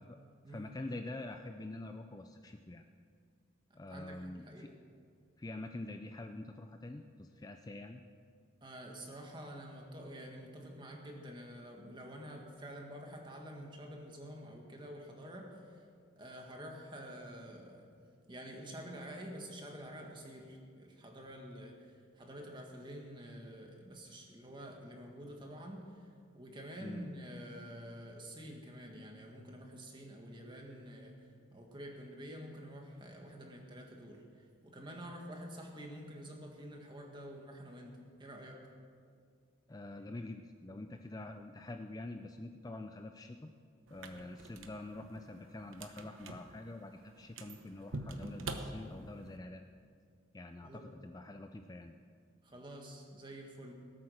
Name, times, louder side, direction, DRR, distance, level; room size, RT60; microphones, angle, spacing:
voice 1, 0.5-2.9 3.7-4.7 5.4-8.0 26.8-27.1 39.7-43.5 43.9-49.6 50.3-51.9, left 2 dB, 20° left, 6 dB, 0.4 m, -46 dB
voice 2, 3.9-4.7 8.6-15.9 16.2-17.9 18.3-38.7 50.6-50.9 52.4-53.7, equal, 25° right, 1 dB, 1.8 m, -48 dB
sound 1, 43.9-49.4, right 2 dB, 85° right, 1.0 m, -46 dB
18.5 x 8.6 x 6.5 m, 2.1 s
head